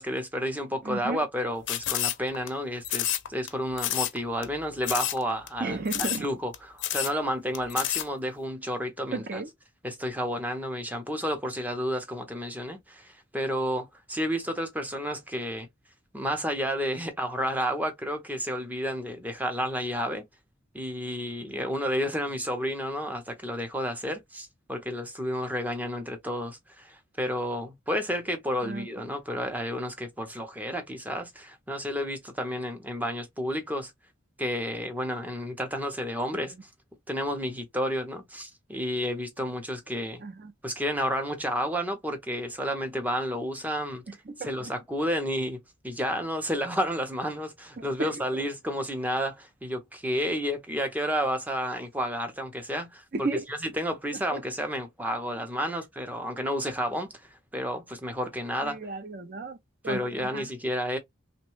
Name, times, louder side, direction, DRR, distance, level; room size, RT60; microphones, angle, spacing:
voice 1, 0.0-9.4 9.8-15.7 16.1-20.2 20.7-33.9 34.4-36.5 37.1-40.2 40.6-44.0 44.4-45.6 45.8-53.0 53.6-58.8 59.8-61.0, equal, 10° right, 0.6 m, -31 dB
voice 2, 0.8-1.2 5.6-6.3 9.1-9.5 28.6-28.9 36.3-36.6 40.2-40.5 44.1-44.5 47.8-48.4 53.1-53.4 54.3-54.4 55.6-55.7 58.6-59.6 59.8-60.5, right 3 dB, 50° right, 0.6 m, -34 dB
sound 1, 1.7-2.5 2.8-3.5 3.8-4.2 4.4-4.5 4.8-5.2 5.5-5.6 5.9-6.3 6.5-6.6 6.8-7.1 7.5-8.1, left 13 dB, 65° left, 0.4 m, -29 dB
3.0 x 2.2 x 3.1 m
head